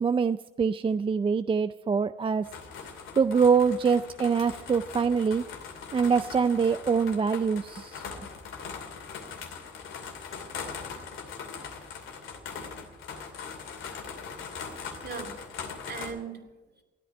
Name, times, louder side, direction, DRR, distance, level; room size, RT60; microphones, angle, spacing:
voice 1, 0.0-2.5 3.2-5.4 5.9-8.0, right 5 dB, 25° right, 12 dB, 0.4 m, -24 dB
sound 1, 2.4-16.1, left 6 dB, 85° left, 2.6 m, -41 dB
voice 2, 14.6-16.8, right 5 dB, 55° right, 3 dB, 2.7 m, -41 dB
13.5 x 9.2 x 9.7 m, 1.1 s
cardioid pair, 90°, 20 cm